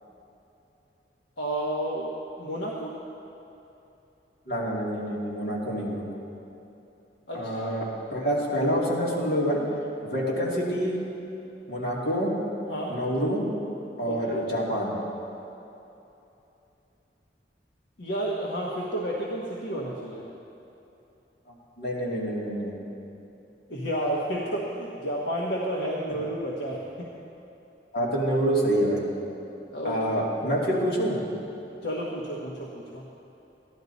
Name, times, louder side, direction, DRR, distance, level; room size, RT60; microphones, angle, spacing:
voice 1, 1.4-3.0 7.3-7.5 12.7-13.0 14.0-14.2 18.0-20.3 23.7-27.1 29.7-30.0 31.8-33.1, right 1 dB, 75° left, -4 dB, 1.2 m, -31 dB
voice 2, 4.5-6.0 7.3-9.6 10.0-11.0 11.7-12.3 12.9-13.4 14.0-14.9 21.8-22.7 27.9-29.1 29.8-31.2, equal, 60° left, -5 dB, 2.5 m, -27 dB
14.5 x 11.0 x 4.1 m, 2.9 s
head